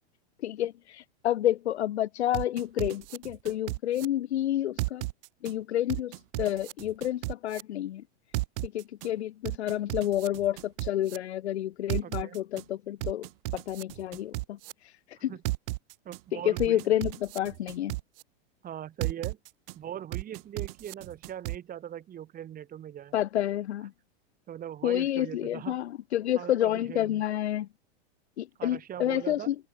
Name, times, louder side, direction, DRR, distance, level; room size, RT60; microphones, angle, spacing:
voice 1, 0.4-5.0 5.4-8.0 8.6-13.3 13.5-15.3 16.3-17.9 23.1-23.9 24.8-27.7 28.4-29.6, left 12 dB, 85° left, 2.1 m, -29 dB
sound 1, 2.3-4.1 4.8-5.5 5.9-7.6 8.3-9.1 9.4-11.2 11.9-12.6 13.0-14.7 15.4-16.2 16.6-18.2 19.0-19.7 20.1-21.6, right 21 dB, 60° right, 4.5 m, -34 dB
voice 2, 12.0-12.4 15.2-15.4 16.0-16.9 18.6-19.4 19.8-23.2 24.5-25.8 26.3-27.2 28.6-29.5, right 10 dB, 25° right, 5.9 m, -40 dB
supercardioid pair, 135°, 32 cm